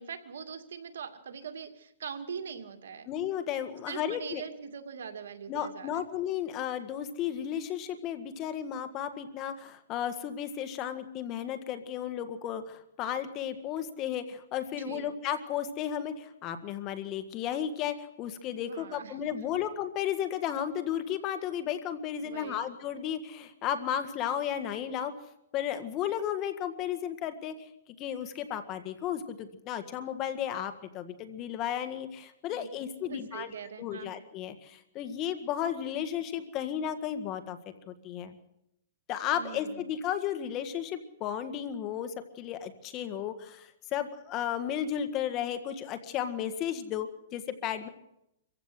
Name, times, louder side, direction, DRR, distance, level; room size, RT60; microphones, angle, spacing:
voice 1, 0.0-3.1 3.9-6.0 14.8-15.1 18.5-19.4 22.2-22.6 32.5-32.7 33.1-34.1 39.3-39.8, right 6 dB, 80° right, 7 dB, 2.4 m, -42 dB
voice 2, 3.1-4.4 5.5-25.1 25.5-27.6 28.0-33.5 33.8-37.6 37.9-38.4 39.1-47.9, left 9 dB, 30° left, 9 dB, 1.8 m, -34 dB
25.0 x 15.5 x 7.8 m, 0.83 s
hypercardioid pair, 150°, 0 cm